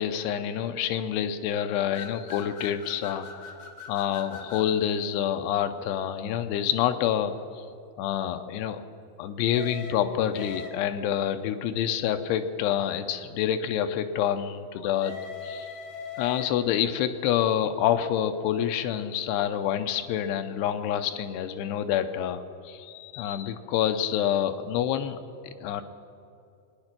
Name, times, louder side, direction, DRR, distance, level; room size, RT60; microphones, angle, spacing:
voice 1, 0.0-3.5 3.9-7.3 8.0-8.8 9.2-15.2 15.4-15.7 16.2-25.2 25.4-25.8, left 10 dB, 85° left, 8 dB, 2.8 m, -27 dB
sound 1, 1.9-4.7 9.5-11.1 14.9-16.8, left 5 dB, 70° left, 1.0 m, -41 dB
24.0 x 9.7 x 6.0 m, 2.6 s
omnidirectional pair, 4.8 m